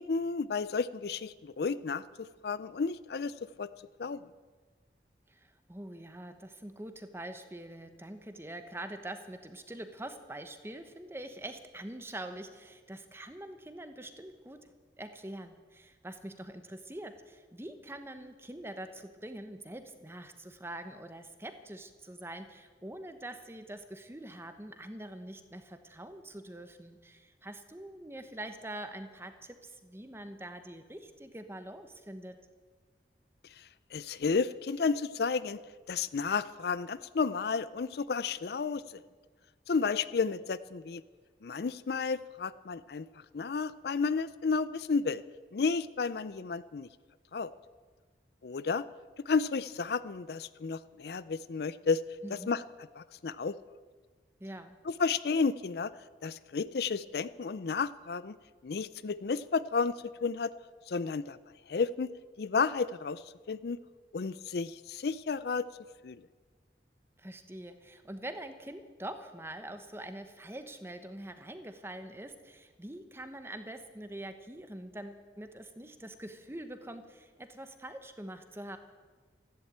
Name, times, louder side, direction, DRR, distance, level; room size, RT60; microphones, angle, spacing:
voice 1, 0.0-3.3 3.6-3.7 4.0-4.2 33.6-33.7 33.9-35.6 35.9-39.0 39.7-41.0 41.4-43.1 43.3-45.2 45.5-46.9 47.3-47.5 48.4-48.8 49.3-52.0 52.3-52.6 53.0-53.6 54.9-55.9 56.2-58.4 58.6-60.0 60.2-60.5 60.9-61.4 61.7-62.1 62.4-63.8 64.1-65.7 66.0-66.2, left 5 dB, 60° left, 16 dB, 0.4 m, -32 dB
voice 2, 5.3-14.7 15.0-32.4 52.2-52.5 54.4-54.8 67.2-78.8, right 1 dB, 15° right, 8 dB, 1.1 m, -44 dB
14.5 x 11.5 x 8.7 m, 1.4 s
head